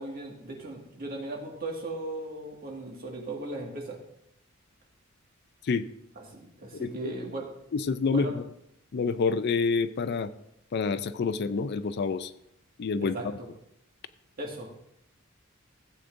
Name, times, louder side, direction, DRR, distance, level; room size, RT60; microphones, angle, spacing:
voice 1, 0.0-4.0 6.2-7.5 8.1-8.4 13.1-13.5 14.4-14.9, right 2 dB, 45° right, 0 dB, 1.9 m, -37 dB
voice 2, 6.7-7.1 7.7-8.4 8.9-10.3 10.7-12.3 12.8-13.2, left 4 dB, 50° left, 13 dB, 0.4 m, -28 dB
15.5 x 8.1 x 2.6 m, 0.77 s
head